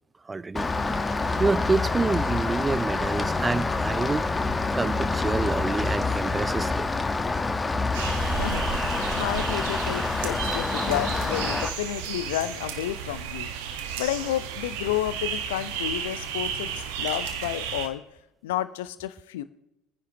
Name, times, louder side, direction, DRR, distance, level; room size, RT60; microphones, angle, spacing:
voice 1, 0.3-0.7 1.4-4.3 4.7-6.9, right 3 dB, 20° right, 0.4 m, -27 dB
Rain, 0.6-11.7, left 3 dB, 15° left, 1.2 m, -27 dB
sound 1, 7.9-17.9, right 8 dB, 70° right, 1.3 m, -33 dB
voice 2, 9.1-13.5 14.0-16.7 17.0-18.0 18.4-19.4, left 13 dB, 70° left, 0.8 m, -31 dB
27.0 x 9.9 x 2.9 m
hypercardioid pair, 70°, 0 cm